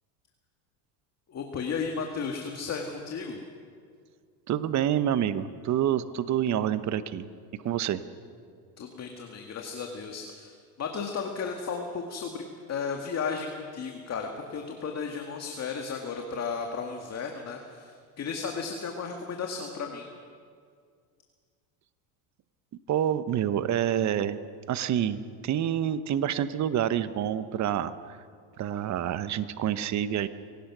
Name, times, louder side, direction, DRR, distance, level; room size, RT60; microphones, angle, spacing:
voice 1, 1.3-3.4 8.8-20.1, left 5 dB, 30° left, 3 dB, 1.9 m, -34 dB
voice 2, 4.5-7.3 7.6-8.0 22.9-24.4 24.7-28.2 28.6-30.3, right 10 dB, 35° right, 13 dB, 1.0 m, -27 dB
24.5 x 17.5 x 6.1 m, 2.1 s
supercardioid pair, 115°, 49 cm